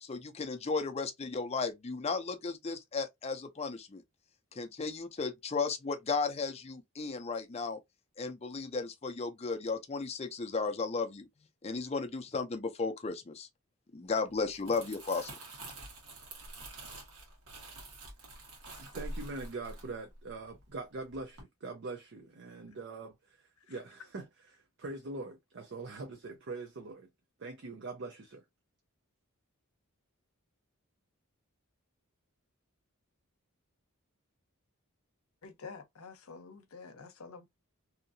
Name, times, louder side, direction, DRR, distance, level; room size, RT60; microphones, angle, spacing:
voice 1, 0.0-4.0 4.5-7.8 8.2-11.3 11.6-13.5 13.9-15.3, left 4 dB, 30° left, 0.5 m, -35 dB
Crumpling crinkling, 14.4-20.8 21.1-21.4, right 1 dB, 85° right, 1.3 m, -47 dB
voice 2, 18.8-23.4 23.7-24.3 24.5-27.1 27.4-28.4, right 3 dB, 55° right, 0.5 m, -43 dB
voice 3, 35.4-37.5, left 4 dB, 80° left, 0.7 m, -48 dB
2.8 x 2.6 x 2.6 m
head